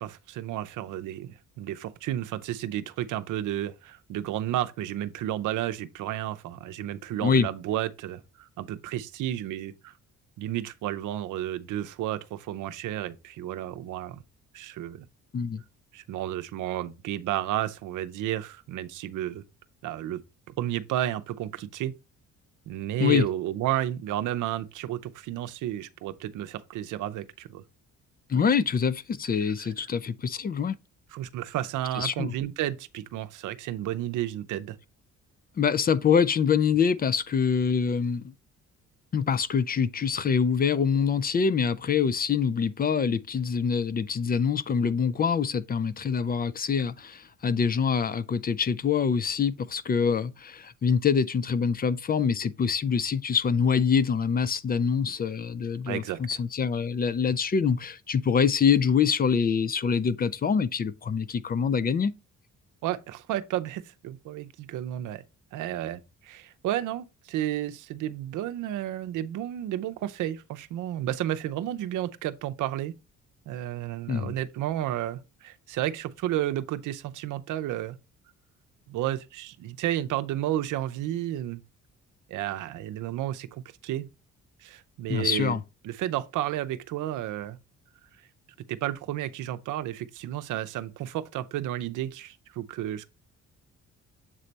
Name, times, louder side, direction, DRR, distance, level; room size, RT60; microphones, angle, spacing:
voice 1, 0.0-9.9 10.4-14.2 14.5-15.1 15.9-19.4 19.8-20.2 20.6-21.9 22.7-27.6 28.3-28.4 29.6-29.7 31.1-34.8 55.9-56.4 62.8-65.2 65.5-72.9 73.5-78.0 78.9-81.6 82.3-84.1 84.6-85.6 85.8-87.6 88.7-93.1, right 12 dB, 80° right, 0.6 m, -32 dB
voice 2, 28.3-30.8 32.0-32.3 35.6-38.3 39.1-62.1 74.1-74.3 85.1-85.6, left 6 dB, 30° left, 0.4 m, -25 dB
7.5 x 3.3 x 4.0 m
cardioid pair, 90°, 30 cm